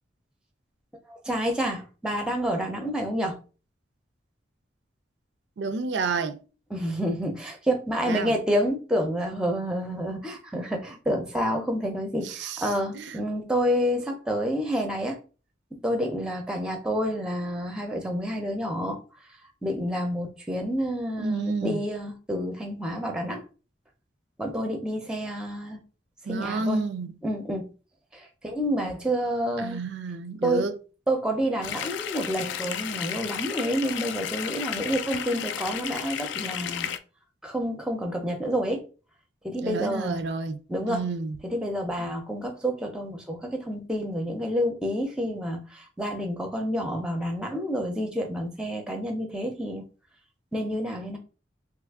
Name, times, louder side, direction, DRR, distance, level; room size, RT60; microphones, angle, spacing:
voice 1, 1.1-3.4 6.7-15.2 15.7-19.0 19.6-23.4 24.4-25.8 26.3-26.8 27.2-27.7 28.1-29.8 30.4-30.7 31.1-36.9 37.4-38.8 39.4-40.2 40.7-41.0 41.4-49.8 50.5-51.2, equal, 5° right, 0.5 m, -29 dB
voice 2, 5.6-6.4 8.1-8.3 12.2-13.2 21.2-21.8 26.3-27.1 29.6-30.7 39.6-40.6 40.9-41.4, right 4 dB, 70° right, 0.4 m, -30 dB
sound 1, 31.6-37.0, left 9 dB, 75° left, 0.3 m, -33 dB
3.1 x 2.4 x 3.4 m
head